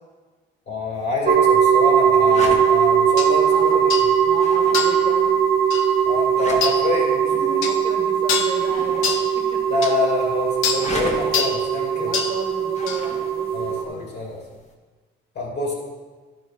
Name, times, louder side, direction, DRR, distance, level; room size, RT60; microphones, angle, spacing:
voice 1, 0.7-4.1 6.0-7.6 9.7-12.1 13.5-14.4 15.3-15.7, left 3 dB, 65° left, -3 dB, 2.2 m, -26 dB
sound 1, 0.9-14.7, left 2 dB, 35° left, 1.6 m, -39 dB
sound 2, 1.3-13.8, right 8 dB, 50° right, 0.7 m, -20 dB
sound 3, 3.2-3.3 3.9-4.1 4.7-5.0 5.7-5.9 6.6-6.8 7.6-7.8 8.3-8.6 9.0-9.3 9.8-9.9 10.6-10.9 11.3-11.6 12.1-12.4 12.9-13.0, left 6 dB, 85° left, 0.8 m, -24 dB
voice 2, 3.2-3.8 4.2-5.4 7.5-9.6 11.9-14.3, right 2 dB, 25° right, 3 dB, 1.2 m, -36 dB
11.5 x 4.6 x 4.3 m, 1.4 s
cardioid pair, 90°, 20 cm